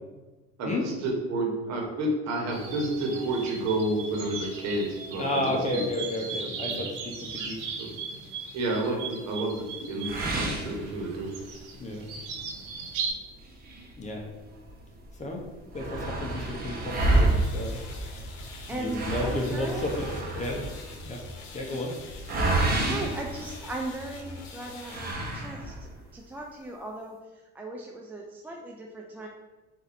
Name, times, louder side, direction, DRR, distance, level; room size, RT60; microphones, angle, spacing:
voice 1, 0.6-5.8 6.6-6.8 7.8-7.9 8.5-11.3, right 2 dB, 60° right, 1.2 m, -30 dB
sound 1, 2.5-13.1, right 5 dB, 85° right, 1.0 m, -38 dB
voice 2, 5.2-6.9 7.3-7.6 8.8-9.0 11.8-12.1 14.0-14.2 15.2-15.4 15.7-17.8 18.7-20.6 21.1-21.2 21.5-21.9, left 1 dB, 25° left, 0.8 m, -31 dB
sound 2, 10.0-11.5 11.9-12.0 12.5-12.6 13.4-14.7 15.0-15.1 15.4-24.1 24.8-25.9, right 2 dB, 30° right, 1.0 m, -29 dB
sound 3, 17.0-25.1, left 3 dB, 75° left, 0.9 m, -44 dB
voice 3, 18.7-19.9 21.7-21.8 22.8-29.3, right 2 dB, 5° right, 0.3 m, -38 dB
4.1 x 2.7 x 4.0 m
cardioid pair, 115°, 30 cm